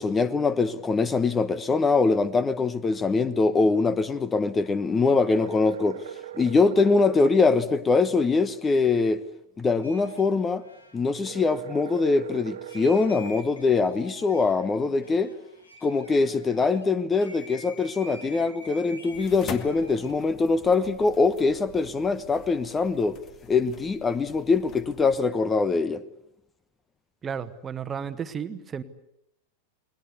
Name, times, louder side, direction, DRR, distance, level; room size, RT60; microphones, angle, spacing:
voice 1, 0.0-6.0 6.4-9.2 9.6-10.6 10.9-15.3 15.8-23.2 23.5-26.0, left 4 dB, 15° left, 1.1 m, -23 dB
sound 1, 5.3-7.4 11.3-13.4, right 11 dB, 65° right, 1.3 m, -40 dB
sound 2, 9.8-16.8 17.2-20.2, left 1 dB, 80° left, 3.8 m, -48 dB
sound 3, 19.1-25.2, left 7 dB, 30° left, 2.0 m, -44 dB
voice 2, 27.2-28.8, right 7 dB, 20° right, 1.5 m, -33 dB
29.5 x 21.0 x 8.3 m
figure-of-eight pair, 90°, 0 cm